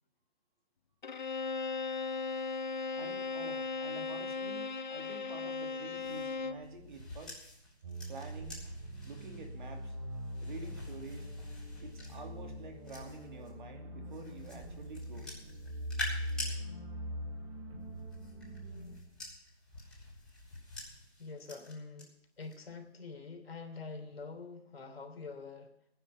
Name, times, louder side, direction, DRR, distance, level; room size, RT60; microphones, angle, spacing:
Bowed string instrument, 1.0-6.7, left 4 dB, 45° left, 0.7 m, -37 dB
voice 1, 2.9-7.4 8.1-8.6 9.0-9.9 10.4-11.3 11.8-15.3, right 3 dB, 45° right, 3 dB, 2.6 m, -48 dB
sound 1, 5.9-13.5 14.1-16.5 17.8-22.0 22.4-22.8, left 1 dB, ahead, 4.3 m, -47 dB
sound 2, 7.8-19.0, equal, 30° right, 3.8 m, -42 dB
voice 2, 21.2-25.7, left 4 dB, 60° left, 6 dB, 3.4 m, -46 dB
19.0 x 9.7 x 7.0 m, 0.80 s
hypercardioid pair, 175°, 33 cm